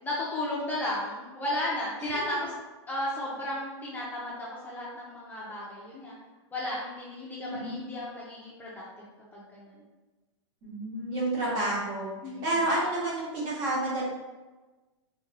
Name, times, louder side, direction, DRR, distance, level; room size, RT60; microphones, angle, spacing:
voice 1, 0.0-2.5 2.9-6.2 6.5-9.0 9.3-9.8 12.2-12.4, left 1 dB, 10° left, -6 dB, 0.5 m, -34 dB
voice 2, 7.4-7.8 10.6-12.1 12.4-14.0, right 1 dB, 40° right, -5 dB, 1.3 m, -29 dB
3.6 x 2.2 x 3.2 m, 1.2 s
hypercardioid pair, 135°, 15 cm